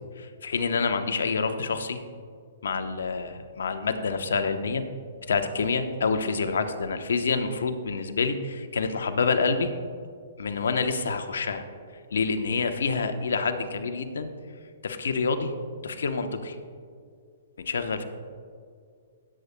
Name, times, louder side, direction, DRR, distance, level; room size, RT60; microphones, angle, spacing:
voice 1, 0.2-2.0 2.6-4.8 5.3-9.7 10.4-11.6 12.1-14.3 14.8-15.5 15.8-16.6 17.6-18.0, left 4 dB, 75° left, 7 dB, 0.9 m, -27 dB
17.5 x 8.5 x 2.2 m, 2.2 s
hypercardioid pair, 135°, 0 cm